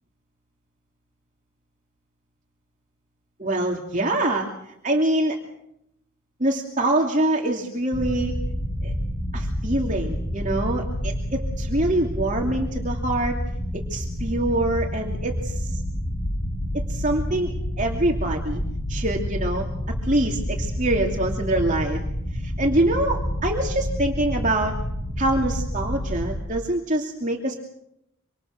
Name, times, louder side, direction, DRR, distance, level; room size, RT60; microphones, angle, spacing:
voice 1, 3.4-5.4 6.4-8.3 8.8-8.9 9.3-13.4 13.9-15.8 16.9-18.6 18.9-19.7 20.0-22.0 22.3-24.7 25.2-27.6, right 1 dB, 35° right, 1 dB, 2.8 m, -25 dB
sound 1, 7.9-26.4, equal, 25° left, 7.5 m, -28 dB
26.5 x 26.0 x 6.6 m, 0.80 s
head